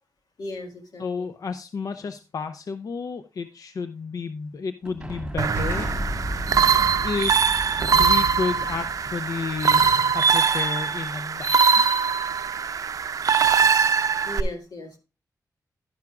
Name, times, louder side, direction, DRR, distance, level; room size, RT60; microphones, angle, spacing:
voice 1, 0.4-1.3 14.2-15.0, left 2 dB, 85° left, 4 dB, 1.8 m, -36 dB
voice 2, 1.0-5.9 7.0-12.0, left 5 dB, 65° left, 9 dB, 0.4 m, -32 dB
sound 1, 4.8-9.8, right 1 dB, 15° right, 1.5 m, -40 dB
sound 2, 5.4-14.4, right 6 dB, 60° right, 0.5 m, -22 dB
Explosion, 5.5-10.9, equal, 45° left, 2.5 m, -35 dB
10.5 x 10.5 x 2.4 m, 0.31 s
wide cardioid pair, 160°, 7 cm